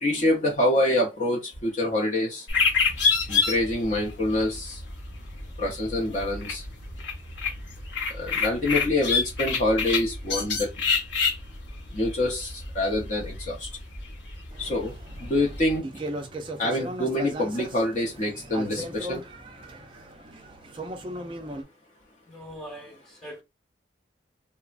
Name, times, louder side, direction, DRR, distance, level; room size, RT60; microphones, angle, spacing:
voice 1, 0.0-2.4 3.3-4.8 5.6-6.6 8.1-10.7 11.9-13.7 14.6-14.9 15.2-15.8 16.6-19.2, left 1 dB, 40° left, 0.6 m, -26 dB
sound 1, 2.5-15.8, left 5 dB, 80° left, 0.9 m, -29 dB
sound 2, 14.5-21.6, right 1 dB, 25° right, 0.4 m, -38 dB
voice 2, 22.3-23.4, equal, 5° left, 1.0 m, -42 dB
3.2 x 2.0 x 2.4 m
head